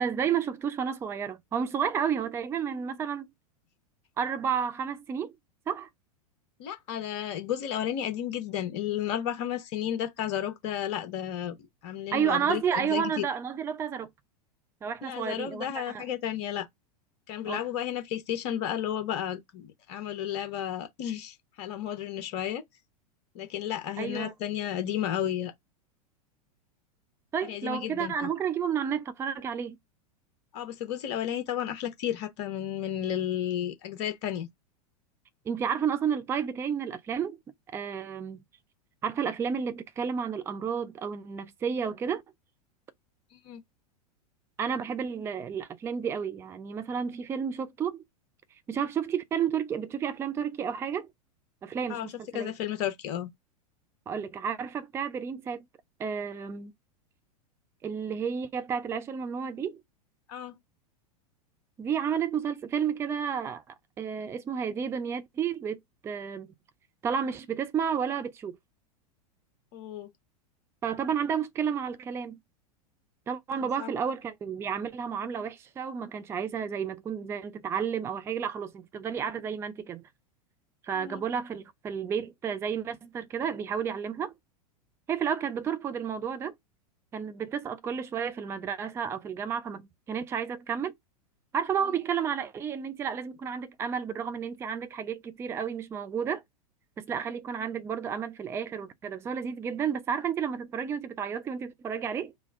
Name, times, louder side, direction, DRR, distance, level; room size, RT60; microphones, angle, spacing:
voice 1, 0.0-3.3 4.2-5.3 5.7-5.9 12.1-14.1 14.8-16.1 17.5-17.6 24.0-24.3 27.3-29.8 35.5-37.4 37.7-38.4 39.0-42.2 44.6-48.0 48.7-51.1 51.6-52.5 54.1-55.7 56.0-56.7 57.8-59.8 61.8-66.5 67.0-68.6 70.8-72.4 73.3-80.0 80.8-84.3 85.1-86.5 87.1-90.9 91.5-96.4 97.0-102.3, right 7 dB, 15° right, 0.4 m, -31 dB
voice 2, 6.6-11.6 11.8-13.2 15.0-16.7 17.3-22.6 23.3-25.5 27.5-28.3 30.5-34.5 43.4-43.6 51.9-52.1 52.3-53.3 60.3-60.6 69.7-70.1 73.8-74.0 80.9-81.2 91.8-91.9, left 10 dB, 45° left, 0.9 m, -32 dB
3.3 x 2.3 x 3.5 m
figure-of-eight pair, 90°, 20 cm